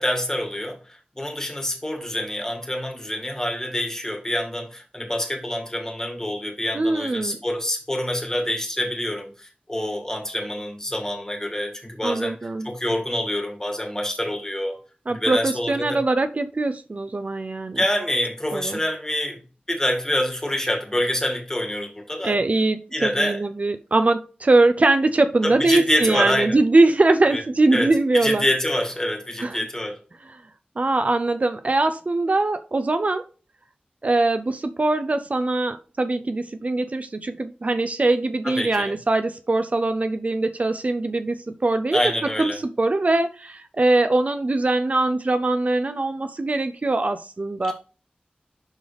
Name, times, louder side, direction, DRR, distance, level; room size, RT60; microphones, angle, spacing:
voice 1, 0.0-12.4 12.6-14.8 15.1-16.0 17.8-19.4 19.7-22.4 22.9-23.4 25.4-26.6 27.3-27.4 27.7-30.0 38.4-38.9 41.9-42.6 47.7-47.8, left 1 dB, 20° left, 2.1 m, -26 dB
voice 2, 6.7-7.4 12.0-12.7 15.1-17.8 18.5-18.8 22.2-28.4 29.4-29.6 30.3-30.4 30.8-33.2 34.0-42.0 42.4-47.7, right 2 dB, 50° right, 0.5 m, -22 dB
11.5 x 4.0 x 3.4 m
wide cardioid pair, 75°, 3 cm